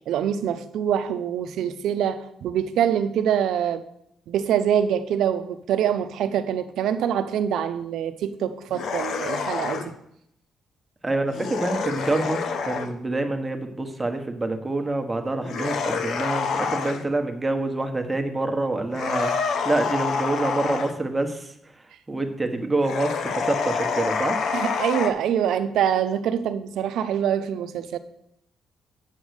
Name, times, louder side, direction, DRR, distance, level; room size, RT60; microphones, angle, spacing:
voice 1, 0.1-3.8 4.3-9.9 24.5-28.0, right 9 dB, 80° right, 0.6 m, -25 dB
sound 1, 8.7-9.9 11.3-12.9 15.4-17.1 18.9-21.0 22.8-25.1, left 5 dB, 70° left, 0.9 m, -27 dB
voice 2, 11.0-21.5 22.1-24.4, right 2 dB, 15° right, 1.3 m, -26 dB
8.2 x 5.3 x 6.5 m
cardioid pair, 90°, 0 cm